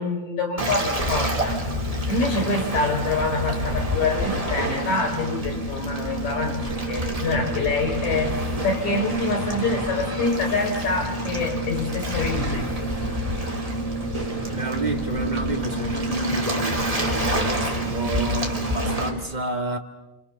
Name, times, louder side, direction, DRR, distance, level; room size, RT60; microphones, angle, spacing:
voice 1, 0.0-1.6 2.1-8.4 8.6-12.7, left 3 dB, 60° left, 5.0 m, -26 dB
Waves surf, 0.6-19.1, equal, 10° right, 3.1 m, -27 dB
voice 2, 7.2-7.8 13.4-13.6 14.5-19.8, right 3 dB, 25° right, 0.9 m, -30 dB
30.0 x 26.5 x 7.0 m
omnidirectional pair, 3.8 m